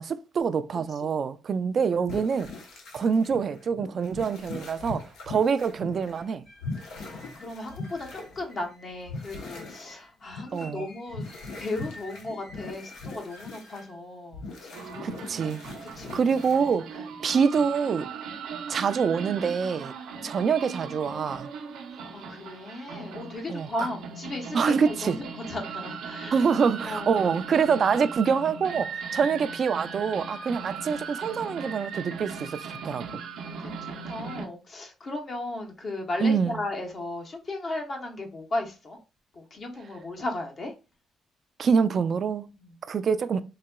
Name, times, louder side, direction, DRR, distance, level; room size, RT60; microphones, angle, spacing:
voice 1, 0.0-2.5 2.9-6.4 10.5-10.9 15.0-15.6 16.1-18.1 18.7-19.9 20.2-21.5 23.5-23.9 24.5-25.2 26.3-33.0 36.2-36.6 41.6-42.5 42.9-43.4, right 6 dB, 50° right, 0.3 m, -25 dB
sound 1, 2.1-6.3 6.6-8.7 9.0-9.9 10.2-10.7 11.1-13.8 14.3-16.9, left 3 dB, 85° left, 0.9 m, -40 dB
sound 2, 6.2-14.0, left 1 dB, 60° left, 2.0 m, -52 dB
voice 2, 6.9-11.2 11.6-14.4 14.7-15.2 15.8-16.1 16.9-17.1 20.2-20.4 21.9-26.4 26.8-27.1 30.5-30.6 33.4-39.0 39.4-40.7 42.6-42.7, left 2 dB, 45° left, 0.9 m, -36 dB
sound 3, 14.7-34.5, right 5 dB, 85° right, 0.6 m, -38 dB
4.0 x 2.8 x 2.2 m
cardioid pair, 90°, 0 cm